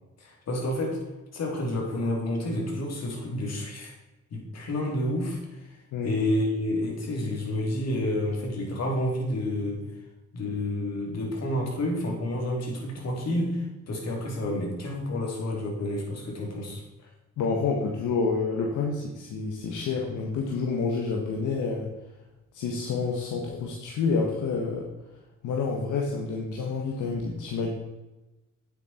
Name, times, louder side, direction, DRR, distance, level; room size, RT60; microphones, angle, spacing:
voice 1, 0.2-1.0 1.3-3.9 4.3-5.7 6.0-9.8 10.3-16.8, left 1 dB, 60° left, 0 dB, 3.5 m, -29 dB
voice 2, 17.4-21.9 22.5-24.9 25.4-27.7, left 4 dB, 80° left, -1 dB, 1.6 m, -28 dB
9.5 x 8.1 x 4.4 m, 1.0 s
cardioid pair, 90°, 30 cm